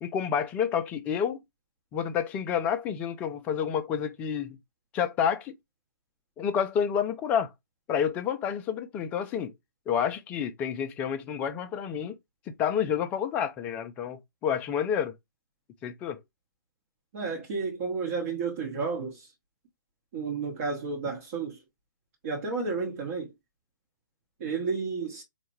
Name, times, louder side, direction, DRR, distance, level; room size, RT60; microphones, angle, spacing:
voice 1, 0.0-1.4 1.9-4.6 4.9-5.5 6.4-7.5 7.9-9.5 9.9-12.2 12.6-15.1 15.8-16.2, left 8 dB, 15° left, 0.3 m, -29 dB
voice 2, 17.1-19.3 20.1-21.6 22.2-23.3 24.4-25.2, right 4 dB, 35° right, 0.8 m, -32 dB
4.2 x 2.2 x 2.9 m
figure-of-eight pair, 130°, 11 cm